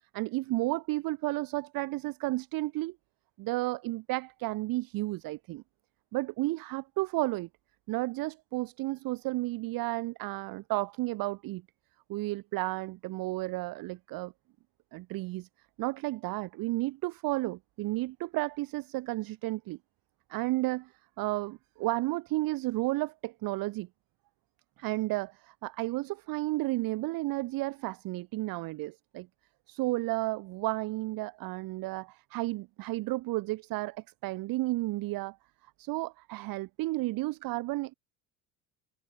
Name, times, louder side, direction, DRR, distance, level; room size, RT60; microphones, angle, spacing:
voice 1, 0.1-3.0 3.4-5.6 6.1-7.5 7.9-11.6 12.1-14.3 14.9-15.5 15.8-19.8 20.3-23.9 24.8-29.3 29.7-35.4 35.8-37.9, right 20 dB, 50° right, 0.9 m, -32 dB
hypercardioid pair, 70°, 44 cm